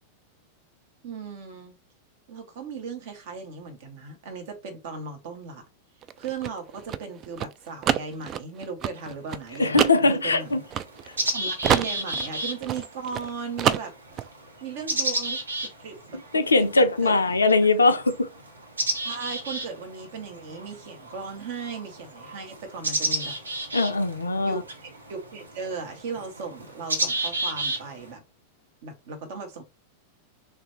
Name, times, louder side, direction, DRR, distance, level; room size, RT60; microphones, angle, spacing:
voice 1, 1.0-1.8 2.3-5.6 6.2-10.6 11.3-13.9 14.6-17.1 19.0-23.4 24.4-28.2 28.8-29.6, right 5 dB, 55° right, 1.0 m, -37 dB
sound 1, 6.0-11.3 11.6-13.3 13.6-14.3, right 9 dB, 30° right, 0.3 m, -27 dB
sound 2, 9.0-9.1 9.9-10.0 10.4-28.1, right 2 dB, 75° right, 0.7 m, -32 dB
voice 2, 9.6-10.6 16.3-18.3 23.7-24.6, left 3 dB, 75° left, 0.4 m, -21 dB
3.3 x 2.5 x 4.3 m
figure-of-eight pair, 90°, 0 cm